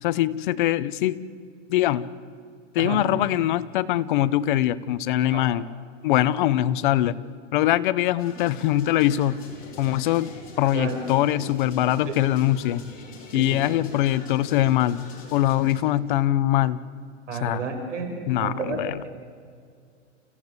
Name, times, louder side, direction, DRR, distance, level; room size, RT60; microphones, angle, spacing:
voice 1, 0.0-1.2 1.7-2.1 2.7-5.6 6.0-7.2 7.5-9.4 9.8-10.3 10.6-12.8 13.3-15.0 15.3-16.8 17.4-17.6 18.3-19.0, left 13 dB, 40° left, 14 dB, 0.8 m, -22 dB
sound 1, 8.2-15.7, left 3 dB, 25° left, 4.4 m, -43 dB
voice 2, 17.3-18.1 18.4-18.8, right 5 dB, 75° right, 4 dB, 5.7 m, -30 dB
29.5 x 15.0 x 8.1 m, 2.1 s
hypercardioid pair, 155°, 37 cm